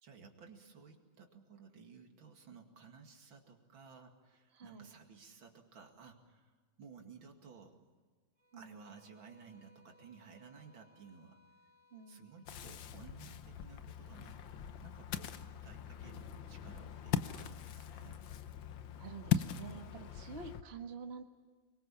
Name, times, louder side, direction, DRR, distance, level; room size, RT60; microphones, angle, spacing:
voice 1, 0.0-7.8 8.5-11.4 12.1-14.4 14.8-18.2, right 5 dB, 80° right, 3 dB, 3.0 m, -56 dB
voice 2, 4.5-4.9 8.5-8.8 11.9-12.3 19.0-21.2, right 5 dB, 35° right, 3 dB, 1.7 m, -48 dB
sound 1, 8.4-13.0, equal, 50° right, 5.4 m, -68 dB
Ocean, 12.5-20.6, left 9 dB, 75° left, 1.7 m, -40 dB
25.5 x 22.5 x 7.1 m, 1.5 s
omnidirectional pair, 2.1 m